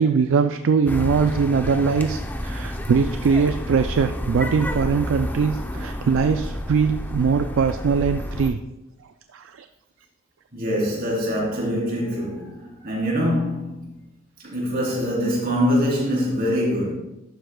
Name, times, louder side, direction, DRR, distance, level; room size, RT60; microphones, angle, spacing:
voice 1, 0.0-8.6 9.3-9.7, right 5 dB, 65° right, 0.4 m, -21 dB
sound 1, 0.9-8.5, equal, 10° left, 0.6 m, -30 dB
voice 2, 10.5-14.0 14.4-16.9, equal, 45° right, 3.1 m, -24 dB
11.5 x 7.8 x 2.2 m
head